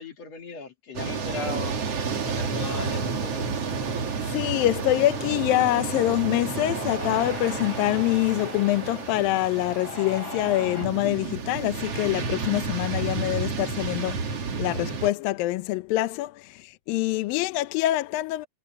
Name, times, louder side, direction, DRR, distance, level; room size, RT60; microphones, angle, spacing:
voice 1, 0.0-1.8 2.3-3.5, left 4 dB, 45° left, 3.1 m, -37 dB
sound 1, 1.0-15.1, right 5 dB, 40° right, 2.9 m, -31 dB
voice 2, 4.3-14.3 14.6-18.5, left 16 dB, 75° left, 2.3 m, -25 dB
Cheering, 5.0-10.9, left 2 dB, 20° left, 8.4 m, -41 dB
omnidirectional pair, 4.7 m